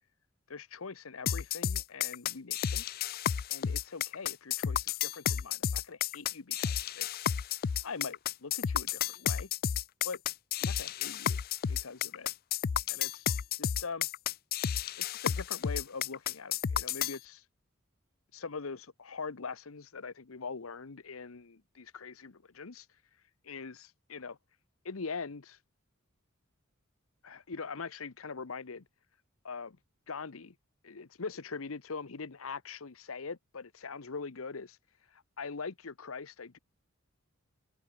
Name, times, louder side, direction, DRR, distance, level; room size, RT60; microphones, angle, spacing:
voice 1, 0.5-2.8 3.5-7.1 7.8-9.5 10.0-10.2 10.6-11.4 11.7-12.3 12.9-13.3 13.6-14.1 15.0-17.4 18.3-22.9 23.4-24.4 24.8-25.6 27.2-28.9 29.4-29.8 30.1-30.5 30.8-34.8 35.1-36.6, left 4 dB, 85° left, 1.0 m, -42 dB
sound 1, 1.3-17.2, left 9 dB, 45° left, 0.4 m, -32 dB
open air
head